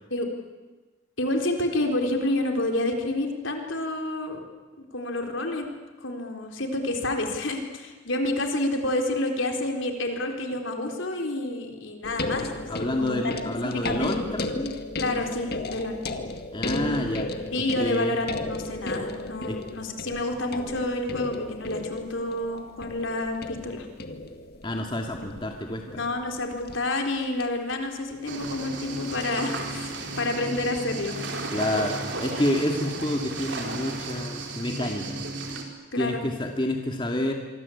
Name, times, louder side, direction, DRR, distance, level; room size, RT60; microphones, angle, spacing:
voice 1, 1.2-4.4 4.9-5.7 6.0-13.3 13.6-14.1 15.0-16.0 17.5-23.9 25.9-31.2 35.9-36.2, left 1 dB, 65° left, 4 dB, 4.1 m, -29 dB
sound 1, 12.0-27.4 28.5-28.6, left 2 dB, 50° left, 1.9 m, -35 dB
voice 2, 12.7-14.8 16.5-17.3 17.8-18.2 19.5-19.6 24.6-26.0 31.5-35.2 36.0-37.3, left 1 dB, 25° left, 2 dB, 2.3 m, -28 dB
sound 2, 28.2-35.6, right 2 dB, 60° right, 4.4 m, -34 dB
26.5 x 24.5 x 8.6 m, 1.3 s
head